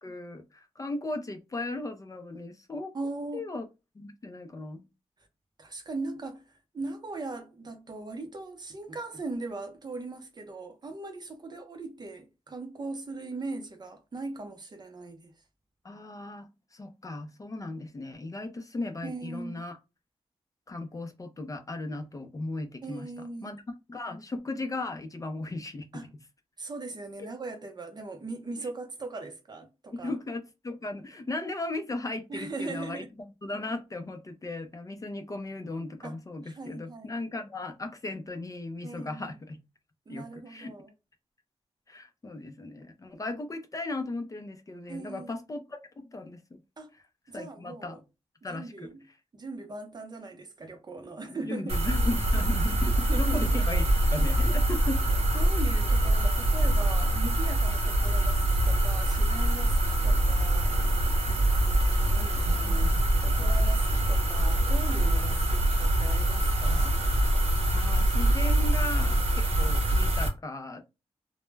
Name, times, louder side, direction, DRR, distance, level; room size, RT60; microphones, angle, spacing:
voice 1, 0.0-2.9 3.3-3.7 4.0-4.8 15.8-19.8 20.7-23.1 23.4-23.6 23.9-26.1 27.2-27.3 29.9-33.0 33.4-39.6 40.1-40.7 41.9-46.4 47.3-48.0 48.4-48.9 51.3-53.8 54.1-55.0 62.5-63.0 67.7-70.8, left 2 dB, 30° left, 0.4 m, -37 dB
voice 2, 2.9-3.5 5.6-6.4 6.7-15.3 19.0-19.6 22.8-23.5 25.9-26.1 26.6-30.1 32.3-33.1 36.0-36.2 36.4-37.2 38.8-39.3 40.1-40.9 44.9-45.3 46.8-46.9 47.3-48.0 48.5-49.0 49.3-51.7 53.1-53.4 55.3-67.0, right 3 dB, 40° right, 0.5 m, -39 dB
sound 1, 51.7-70.3, right 1 dB, 65° right, 0.8 m, -24 dB
2.1 x 2.0 x 3.2 m
wide cardioid pair, 130°, 11 cm